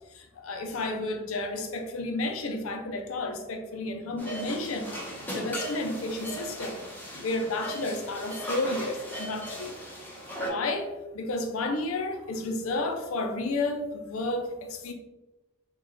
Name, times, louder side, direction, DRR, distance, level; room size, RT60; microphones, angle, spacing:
voice 1, 0.1-4.9 5.3-6.8 7.2-9.8 10.5-14.9, left 2 dB, 85° left, 5 dB, 0.5 m, -31 dB
sound 1, 4.2-10.5, right 1 dB, 10° left, 0.8 m, -38 dB
3.8 x 2.3 x 3.2 m, 1.1 s
head